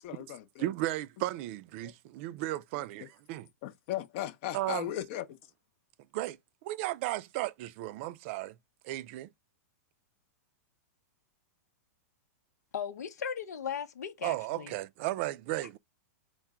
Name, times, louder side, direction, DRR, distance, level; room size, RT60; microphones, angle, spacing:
voice 1, 0.0-0.6 1.8-1.9 3.6-5.2, left 13 dB, 50° left, 0.6 m, -37 dB
voice 2, 0.6-3.5 4.5-4.9 6.1-8.6 8.8-9.3 14.2-15.8, right 16 dB, 50° right, 0.4 m, -35 dB
voice 3, 12.7-14.7, left 7 dB, 85° left, 0.7 m, -37 dB
4.5 x 2.1 x 3.5 m
hypercardioid pair, 125°, 9 cm